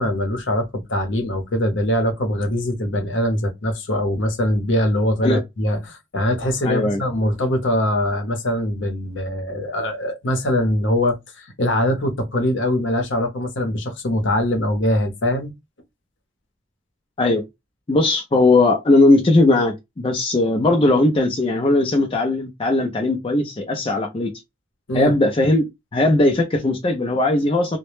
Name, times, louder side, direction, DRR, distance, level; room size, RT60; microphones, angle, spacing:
voice 1, 0.0-15.5 24.9-25.1, left 1 dB, 65° left, 0.7 m, -22 dB
voice 2, 6.6-7.0 17.2-17.4 17.9-24.3 24.9-25.6 25.9-27.8, left 2 dB, 25° left, 0.4 m, -18 dB
2.1 x 2.0 x 3.0 m
head